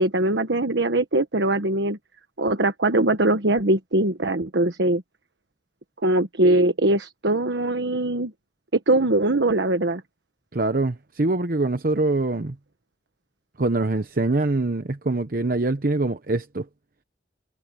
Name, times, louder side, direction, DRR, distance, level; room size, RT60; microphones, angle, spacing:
voice 1, 0.0-2.0 2.4-5.0 6.0-8.3 8.9-10.0, right 1 dB, 80° right, 1.3 m, -21 dB
voice 2, 10.5-12.6 13.6-16.7, right 2 dB, 55° right, 0.9 m, -24 dB
head